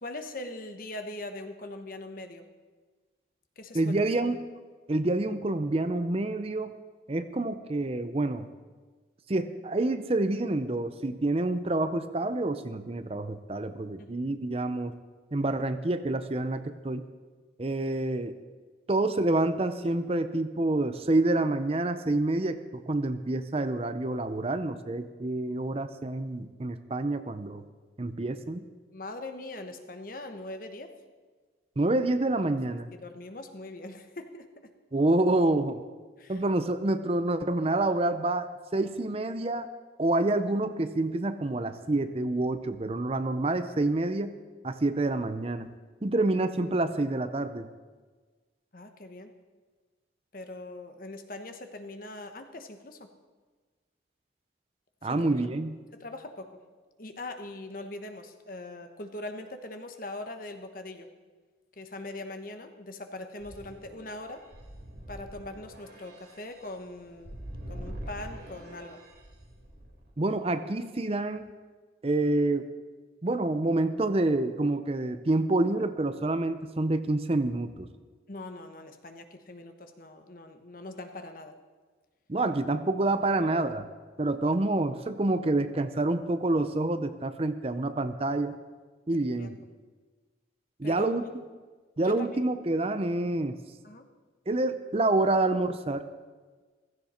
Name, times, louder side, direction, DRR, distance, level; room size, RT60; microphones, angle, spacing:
voice 1, 0.0-2.5 3.6-4.0 14.0-14.1 28.3-28.4 28.9-30.9 33.0-34.7 36.2-36.4 48.7-49.3 50.3-53.1 55.0-55.4 56.0-56.5 57.0-61.1 61.8-64.4 65.1-69.0 78.3-81.5 89.4-89.5 90.8-91.1 92.0-92.4 93.8-94.1, left 2 dB, 50° left, 7 dB, 1.2 m, -41 dB
voice 2, 3.7-4.4 4.9-6.7 7.1-8.5 9.3-14.9 15.3-17.0 17.6-18.3 18.9-27.6 28.0-28.6 31.8-32.9 34.9-35.8 36.3-39.7 40.0-44.3 44.6-45.7 46.0-47.7 55.0-55.8 70.2-71.5 72.0-72.7 73.2-77.9 82.3-83.9 84.2-88.6 89.1-89.6 90.8-91.4 92.0-93.6 94.5-96.1, right 2 dB, 30° right, 11 dB, 0.6 m, -27 dB
sound 1, 63.4-70.1, right 1 dB, 60° right, 3.3 m, -44 dB
15.5 x 14.5 x 4.4 m, 1.4 s
head